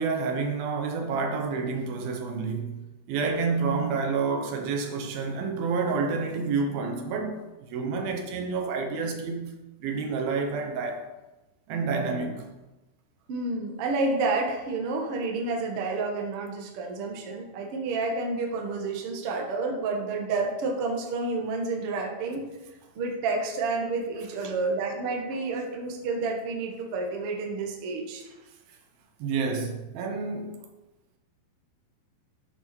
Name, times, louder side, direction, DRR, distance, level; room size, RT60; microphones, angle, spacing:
voice 1, 0.0-2.8 3.1-7.4 7.7-9.5 9.8-11.1 11.7-12.5 24.4-24.5 29.2-30.6, right 4 dB, 70° right, 2.5 m, -29 dB
voice 2, 13.3-22.4 22.9-28.2, right 3 dB, 85° right, 1.2 m, -29 dB
12.0 x 6.9 x 4.5 m
omnidirectional pair, 5.2 m